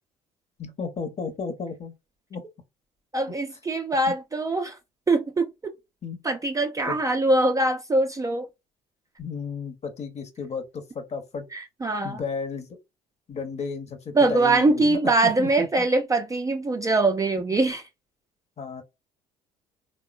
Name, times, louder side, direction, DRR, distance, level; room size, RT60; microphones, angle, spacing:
voice 1, 0.6-1.9 2.3-2.4 3.3-3.4 4.1-4.2 6.0-6.2 6.9-7.0 9.2-11.5 12.0-12.7 13.3-15.9 18.6-18.8, left 5 dB, 35° left, 0.9 m, -33 dB
voice 2, 3.1-4.8 5.1-5.7 6.2-8.5 11.5-12.2 14.2-17.8, right 2 dB, 15° right, 0.4 m, -23 dB
3.5 x 2.1 x 2.4 m
figure-of-eight pair, 55°, 20 cm